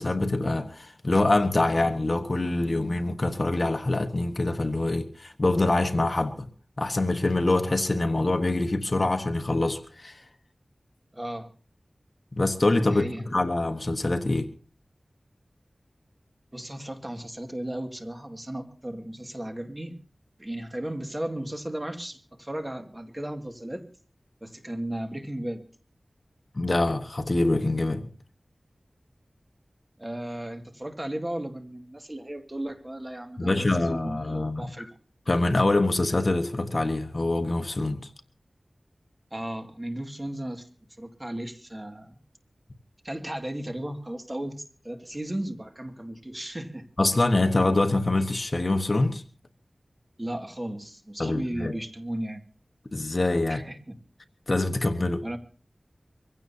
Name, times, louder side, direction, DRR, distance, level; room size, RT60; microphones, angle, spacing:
voice 1, 0.0-6.4 6.8-10.2 12.4-14.5 26.5-28.0 33.4-34.7 35.3-38.1 47.0-49.2 51.2-51.7 52.9-53.6 54.5-55.2, left 2 dB, 45° left, 1.2 m, -25 dB
voice 2, 11.1-11.5 12.8-13.2 16.5-20.0 20.4-23.8 24.4-25.6 30.0-34.9 39.3-40.7 41.0-42.2 43.0-46.9 50.2-52.4 53.5-53.9 55.2-55.4, right 1 dB, 25° right, 2.1 m, -35 dB
24.5 x 16.0 x 2.8 m
wide cardioid pair, 65°, 0 cm